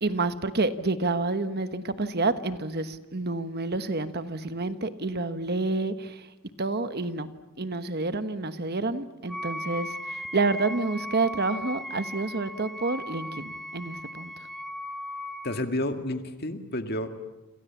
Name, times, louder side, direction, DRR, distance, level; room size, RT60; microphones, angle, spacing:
voice 1, 0.0-6.3 6.6-7.3 7.6-14.3, right 3 dB, 45° right, 11 dB, 1.2 m, -29 dB
Wind instrument woodwind instrument, 9.3-15.6, equal, ahead, 1.8 m, -37 dB
voice 2, 15.4-17.1, left 1 dB, 45° left, 7 dB, 2.0 m, -30 dB
29.5 x 27.0 x 7.3 m, 1.1 s
head